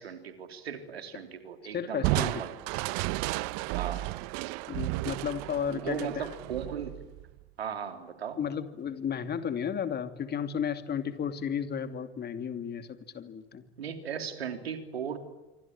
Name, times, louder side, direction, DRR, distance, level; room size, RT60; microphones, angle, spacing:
voice 1, 0.0-2.6 3.8-4.1 5.7-6.9 7.6-8.4 13.8-15.2, right 7 dB, 80° right, 7 dB, 3.6 m, -37 dB
voice 2, 1.7-2.3 4.7-6.3 8.4-13.6, left 7 dB, 30° left, 9 dB, 2.7 m, -33 dB
Crushing, 2.0-7.4, right 21 dB, 55° right, 1.0 m, -33 dB
26.5 x 25.0 x 8.9 m, 1.1 s
figure-of-eight pair, 75°, 31 cm